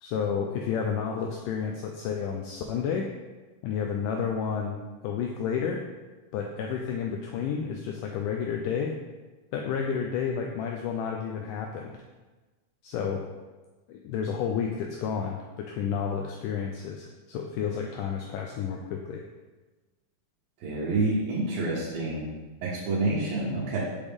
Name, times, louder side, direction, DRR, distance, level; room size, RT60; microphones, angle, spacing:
voice 1, 0.0-3.1 3.6-5.8 6.3-9.0 9.5-11.9 12.8-13.2 13.9-19.2, left 7 dB, 80° left, 2 dB, 1.9 m, -31 dB
voice 2, 20.6-22.3 22.6-23.8, right 2 dB, 85° right, -7 dB, 2.9 m, -28 dB
6.3 x 5.1 x 3.5 m, 1.2 s
omnidirectional pair, 4.0 m